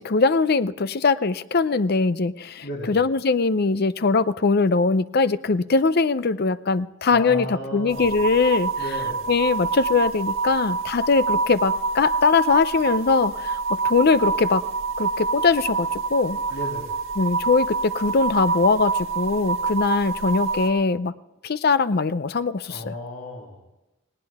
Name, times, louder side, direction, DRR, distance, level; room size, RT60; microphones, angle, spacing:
voice 1, 0.0-8.7 9.3-14.6 15.0-16.4 17.2-21.1 21.4-22.9, left 4 dB, 50° left, 14 dB, 0.6 m, -21 dB
voice 2, 2.6-3.0 7.1-8.2 8.8-9.3 16.5-17.0 22.7-23.6, left 1 dB, 70° left, -4 dB, 3.0 m, -34 dB
sound 1, 7.9-20.7, right 4 dB, 75° right, 1.7 m, -26 dB
18.5 x 18.5 x 3.6 m, 0.99 s
head